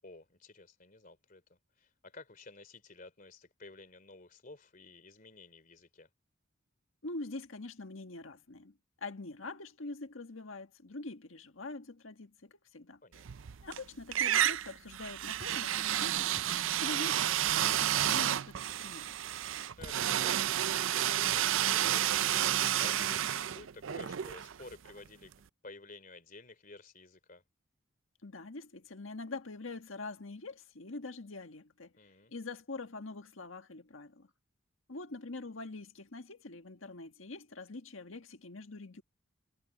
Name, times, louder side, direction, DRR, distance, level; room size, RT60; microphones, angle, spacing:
voice 1, 0.0-6.1 13.0-13.3 19.8-22.2 22.8-25.3 25.6-27.4 32.0-32.3, left 3 dB, 45° left, 3.1 m, -53 dB
voice 2, 7.0-13.0 13.6-16.3 16.8-19.2 28.2-31.9 32.3-34.3 34.9-39.0, left 2 dB, 90° left, 1.7 m, -44 dB
sound 1, 13.2-13.8 14.1-25.0, right 11 dB, 80° right, 0.5 m, -31 dB
sound 2, 15.4-15.6 16.4-16.6 17.5-17.6 18.0-18.2 19.8-20.0, equal, 25° right, 8.0 m, -51 dB
head